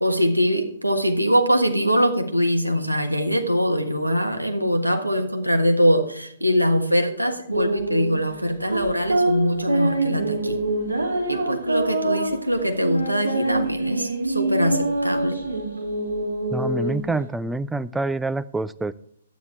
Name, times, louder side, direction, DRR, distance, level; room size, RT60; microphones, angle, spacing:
voice 1, 0.0-10.6 11.3-15.4, equal, 90° right, 5 dB, 1.4 m, -22 dB
sound 1, 7.5-17.2, right 2 dB, 70° right, 3.5 m, -25 dB
voice 2, 16.5-18.9, right 3 dB, 5° right, 14 dB, 0.3 m, -26 dB
12.0 x 9.5 x 3.3 m, 0.67 s
figure-of-eight pair, 120°, 0 cm